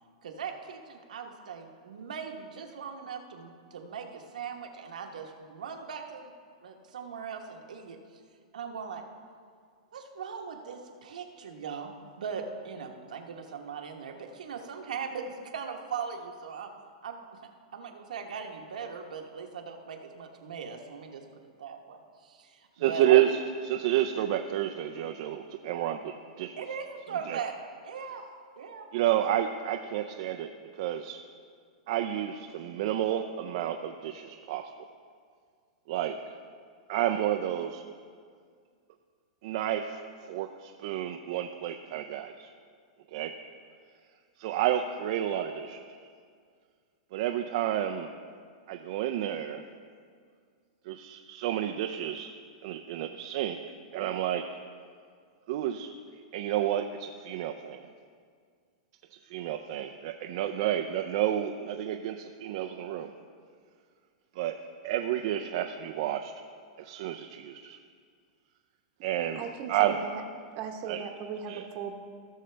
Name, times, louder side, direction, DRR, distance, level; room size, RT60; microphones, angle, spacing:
voice 1, 0.2-6.3 6.6-8.0 8.5-9.0 9.9-16.7 17.0-17.2 17.7-22.6 22.9-23.1 26.6-27.5 27.8-28.2 28.6-28.9, right 6 dB, 90° right, 3 dB, 1.2 m, -39 dB
voice 2, 22.8-26.6 27.3-27.4 28.9-31.2 31.9-34.7 35.9-36.4 36.9-37.8 39.4-42.5 43.1-43.3 44.4-46.0 47.1-48.1 48.7-49.6 50.9-52.3 52.6-53.6 53.9-54.5 55.5-55.9 56.3-57.8 59.1-63.1 64.4-64.6 64.8-66.3 66.8-67.8 69.0-70.0 70.9-71.1 71.5-71.7, right 11 dB, 55° right, 5 dB, 0.5 m, -30 dB
voice 3, 69.4-70.2 70.6-72.0, right 7 dB, 40° right, 4 dB, 1.0 m, -38 dB
17.0 x 6.5 x 3.3 m, 2.1 s
hypercardioid pair, 140°, 4 cm